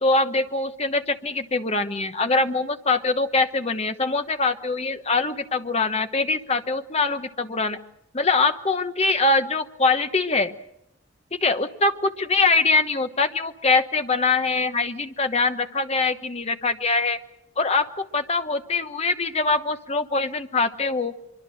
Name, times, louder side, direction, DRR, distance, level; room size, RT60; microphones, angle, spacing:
voice 1, 0.0-7.8 8.1-10.5 11.3-17.2 17.6-21.1, left 3 dB, 30° left, 8 dB, 1.0 m, -23 dB
24.0 x 24.0 x 6.4 m, 0.81 s
head